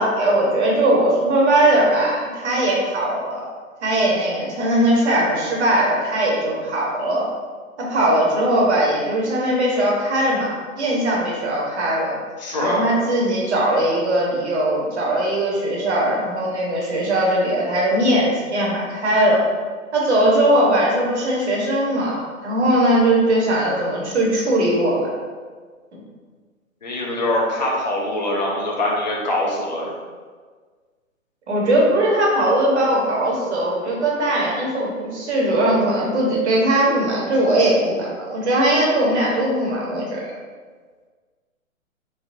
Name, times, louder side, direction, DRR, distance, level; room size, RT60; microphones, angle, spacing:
voice 1, 0.0-3.4 3.8-7.3 7.8-12.1 12.6-19.4 19.9-25.1 25.9-26.0 31.5-40.2, right 1 dB, 50° right, -3 dB, 0.9 m, -20 dB
voice 2, 12.4-12.8 26.8-29.9, left 1 dB, 35° left, -3 dB, 0.4 m, -23 dB
3.2 x 2.1 x 2.6 m, 1.5 s
figure-of-eight pair, 135°, 42 cm